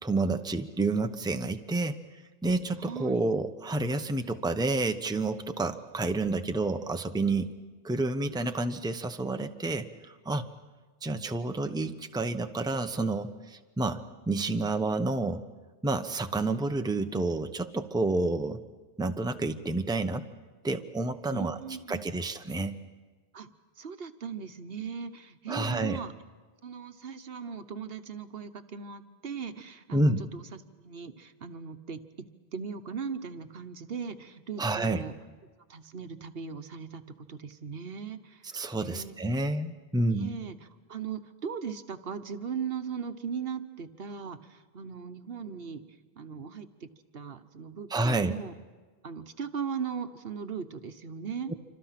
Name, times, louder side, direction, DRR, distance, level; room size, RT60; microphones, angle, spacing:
voice 1, 0.0-2.0 2.4-7.5 7.8-10.5 11.0-14.0 14.3-15.4 15.8-18.6 19.0-20.2 20.6-21.6 21.9-22.8 25.5-26.0 29.9-30.2 34.6-35.0 38.5-40.3 47.9-48.3 51.5-51.6, right 2 dB, 5° right, 7 dB, 0.8 m, -29 dB
voice 2, 2.8-3.3 21.3-22.2 23.3-26.1 26.6-32.3 32.5-35.1 35.7-39.1 40.1-40.6 40.9-46.9 47.1-48.5 49.0-51.5, right 6 dB, 70° right, 10 dB, 1.3 m, -38 dB
27.5 x 26.0 x 5.9 m, 1.3 s
omnidirectional pair, 1.1 m